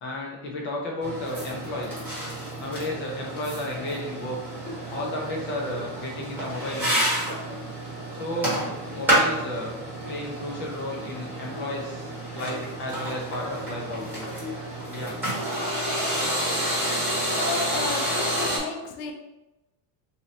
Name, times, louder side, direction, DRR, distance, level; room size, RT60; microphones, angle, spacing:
voice 1, 0.0-2.0 2.6-4.4 4.9-7.1 8.1-9.7 10.1-14.3 14.9-15.1, left 1 dB, 25° left, -1 dB, 0.4 m, -33 dB
sound 1, 1.0-18.6, right 1 dB, 5° right, 0.9 m, -29 dB
voice 2, 17.3-19.1, left 4 dB, 80° left, 4 dB, 0.8 m, -32 dB
3.0 x 2.7 x 4.0 m, 0.99 s
cardioid pair, 170°, 49 cm